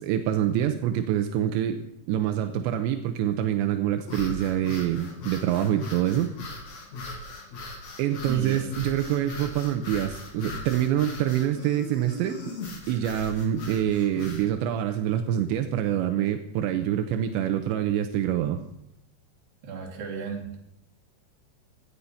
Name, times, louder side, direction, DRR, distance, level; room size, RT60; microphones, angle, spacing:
voice 1, 0.0-6.3 8.0-12.4 12.9-18.6, right 11 dB, 80° right, 6 dB, 2.8 m, -26 dB
sound 1, 4.0-14.5, left 2 dB, 45° left, 3.1 m, -39 dB
voice 2, 8.3-8.6 19.6-20.7, right 5 dB, 50° right, 0 dB, 4.1 m, -34 dB
17.0 x 12.0 x 5.7 m, 0.77 s
omnidirectional pair, 5.8 m